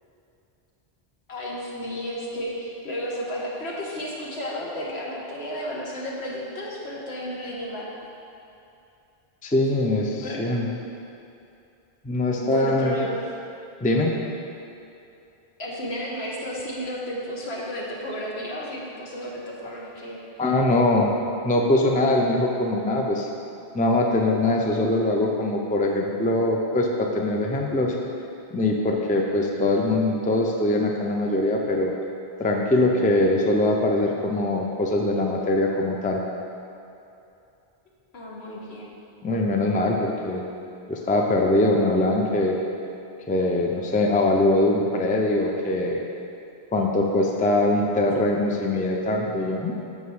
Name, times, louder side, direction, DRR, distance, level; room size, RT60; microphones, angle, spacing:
voice 1, 1.3-7.9 10.2-10.5 12.4-13.3 15.6-20.2 38.1-38.9, equal, 80° left, -4 dB, 1.5 m, -32 dB
voice 2, 9.4-10.7 12.0-12.9 13.8-14.1 20.4-21.2 21.4-23.3 23.7-27.9 28.5-31.9 32.4-36.2 39.2-40.4 40.9-42.6 43.3-46.0 46.7-49.8, left 2 dB, 10° left, 0 dB, 0.4 m, -22 dB
6.9 x 4.8 x 5.4 m, 2.7 s
omnidirectional pair, 1.1 m